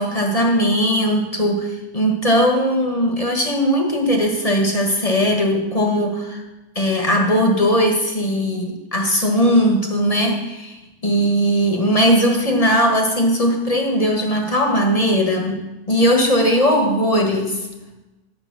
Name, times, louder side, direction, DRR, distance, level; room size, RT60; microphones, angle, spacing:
voice 1, 0.0-6.4 6.7-17.7, equal, 20° left, 2 dB, 1.4 m, -19 dB
10.0 x 7.4 x 6.0 m, 1.0 s
omnidirectional pair, 1.9 m